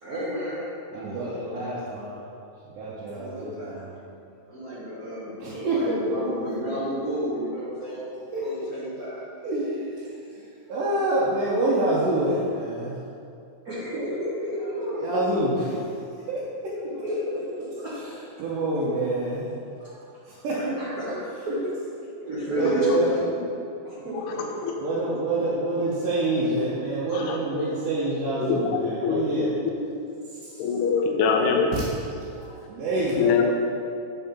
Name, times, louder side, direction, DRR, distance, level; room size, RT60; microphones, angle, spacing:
voice 1, 0.0-1.7 3.1-3.8 4.5-9.2 13.6-15.3 17.0-17.9 20.5-21.1 21.5-21.7 22.0-23.4 23.8-24.7 31.4-31.5, equal, 65° right, -10 dB, 0.9 m, -31 dB
voice 2, 0.9-2.2 2.6-3.9 5.4-6.2 8.3-8.4 9.4-13.0 14.8-16.7 17.9-19.5 19.8-20.0 20.3-20.6 22.5-23.1 24.0-24.1 24.8-29.5 32.3-33.4, right 1 dB, 85° right, -8 dB, 2.5 m, -27 dB
voice 3, 24.1-24.7 27.1-27.8 28.4-29.5 29.8-29.9 30.6-31.9 33.2-33.5, left 5 dB, 80° left, 2 dB, 1.8 m, -25 dB
7.1 x 4.9 x 4.3 m, 2.6 s
omnidirectional pair, 3.7 m